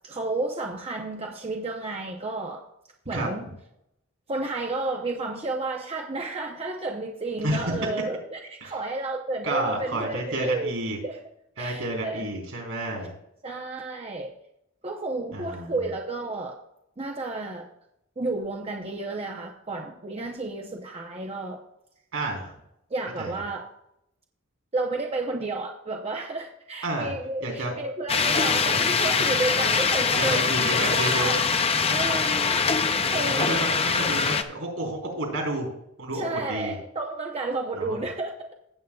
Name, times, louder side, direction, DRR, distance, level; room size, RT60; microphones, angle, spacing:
voice 1, 0.0-2.6 3.1-3.5 4.3-10.7 11.0-11.2 11.6-12.3 13.4-14.3 14.8-16.6 17.0-17.7 18.2-21.6 22.9-23.7 24.7-30.4 30.7-31.3 31.7-32.8 33.1-33.5 36.1-38.5, right 2 dB, 30° right, 1 dB, 0.8 m, -31 dB
voice 2, 7.4-7.9 8.6-8.7 9.4-11.0 11.6-13.1 15.3-15.8 22.1-22.5 23.2-23.3 26.8-27.1 27.4-27.7 30.2-31.3 33.3-35.7 36.0-36.7 37.8-38.0, right 1 dB, 70° right, 2 dB, 3.9 m, -30 dB
sound 1, 28.1-34.4, left 5 dB, 30° left, 0.6 m, -23 dB
16.0 x 8.1 x 2.3 m, 0.80 s
head